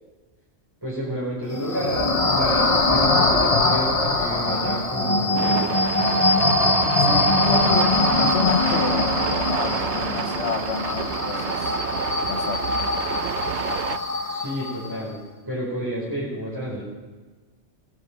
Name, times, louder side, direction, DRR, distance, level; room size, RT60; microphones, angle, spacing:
voice 1, 0.8-5.8 14.3-15.2 15.5-16.8, right 1 dB, 20° right, 4.7 m, -30 dB
sound 1, 1.5-14.9, left 2 dB, 30° left, 1.2 m, -22 dB
sound 2, 5.4-14.0, right 10 dB, 75° right, 0.9 m, -29 dB
voice 2, 7.0-11.8 12.3-12.7, left 6 dB, 80° left, 1.3 m, -29 dB
21.0 x 9.7 x 5.1 m
omnidirectional pair, 1.2 m